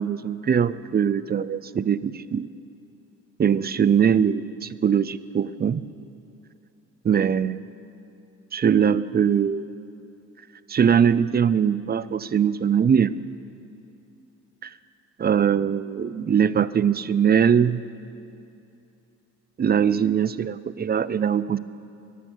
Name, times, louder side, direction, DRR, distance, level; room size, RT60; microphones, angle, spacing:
voice 1, 0.0-2.5 3.4-5.8 7.0-7.6 8.5-9.7 10.7-13.2 14.6-14.7 15.2-17.8 19.6-21.6, right 7 dB, 30° right, 16 dB, 0.5 m, -21 dB
18.5 x 11.0 x 6.1 m, 2.7 s
supercardioid pair, 70°, 32 cm